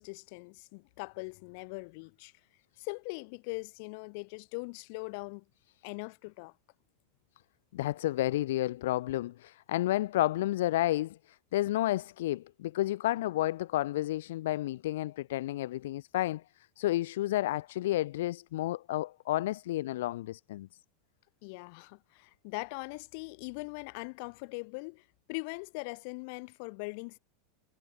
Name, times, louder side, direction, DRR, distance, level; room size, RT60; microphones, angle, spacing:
voice 1, 0.0-2.3 2.8-5.5 5.8-6.5 21.4-27.2, left 33 dB, 60° left, 1.8 m, -41 dB
voice 2, 7.7-16.4 16.8-20.7, left 15 dB, 80° left, 0.3 m, -31 dB
supercardioid pair, 140°, 0 cm